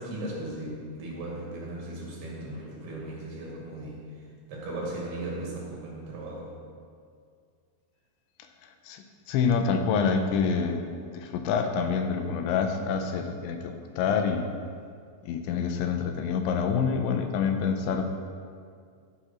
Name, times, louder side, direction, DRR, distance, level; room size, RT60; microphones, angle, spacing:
voice 1, 0.0-4.1 4.5-6.6, right 1 dB, 65° right, -4 dB, 4.1 m, -37 dB
voice 2, 8.6-10.9 11.1-14.5 15.2-18.3, left 6 dB, 85° left, 6 dB, 3.1 m, -27 dB
12.0 x 9.9 x 4.4 m, 2.2 s
omnidirectional pair, 5.2 m